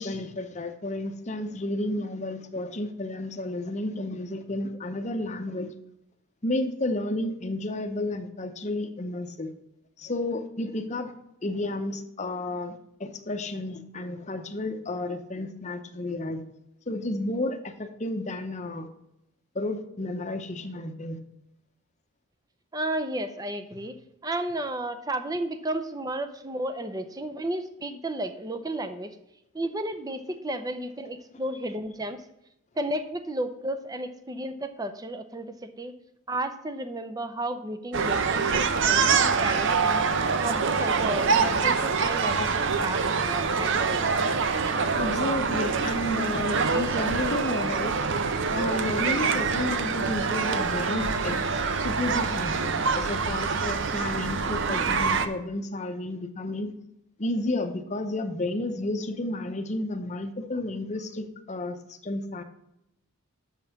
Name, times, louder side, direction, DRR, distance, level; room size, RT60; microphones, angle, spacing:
voice 1, 0.0-5.7 6.4-9.5 10.0-11.1 11.4-16.4 16.9-18.9 19.5-21.2 44.9-48.0 48.5-51.4 51.8-56.7 57.2-62.4, left 2 dB, 30° left, 6 dB, 0.7 m, -32 dB
voice 2, 22.7-23.9 24.2-29.2 29.5-32.2 32.8-35.9 36.3-44.2, right 1 dB, 15° right, 8 dB, 0.5 m, -33 dB
sound 1, 37.9-55.3, right 5 dB, 55° right, 0.6 m, -25 dB
7.2 x 5.4 x 5.8 m, 0.82 s
head